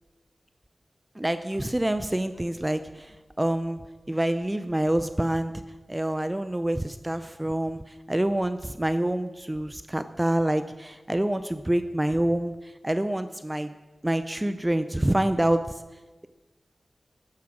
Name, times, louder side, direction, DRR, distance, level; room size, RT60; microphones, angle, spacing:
voice 1, 1.2-3.8 4.1-5.5 5.9-7.8 8.1-13.7 14.0-15.6, right 1 dB, 15° right, 10 dB, 0.5 m, -26 dB
14.0 x 9.6 x 6.1 m, 1.2 s
wide cardioid pair, 75°, 0 cm